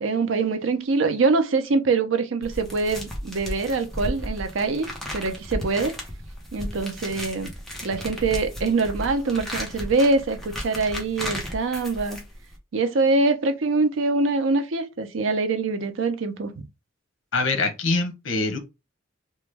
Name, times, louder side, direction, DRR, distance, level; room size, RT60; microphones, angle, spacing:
voice 1, 0.0-6.0 6.5-7.5 7.8-12.2 12.7-16.6, right 3 dB, 85° right, 0.5 m, -24 dB
sound 1, 2.4-12.6, equal, ahead, 0.8 m, -34 dB
voice 2, 17.3-18.6, left 3 dB, 75° left, 0.8 m, -24 dB
3.0 x 2.2 x 3.3 m
head